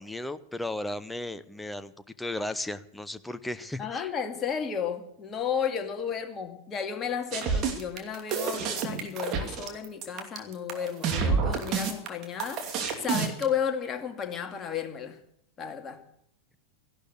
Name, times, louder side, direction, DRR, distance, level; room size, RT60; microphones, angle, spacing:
voice 1, 0.0-1.9 2.2-4.1, left 1 dB, 5° left, 13 dB, 0.8 m, -35 dB
voice 2, 3.8-15.2 15.6-16.0, left 7 dB, 25° left, 5 dB, 2.3 m, -33 dB
sound 1, 7.3-13.4, right 5 dB, 35° right, 2.7 m, -28 dB
14.5 x 11.5 x 8.1 m, 0.72 s
figure-of-eight pair, 90°, 0 cm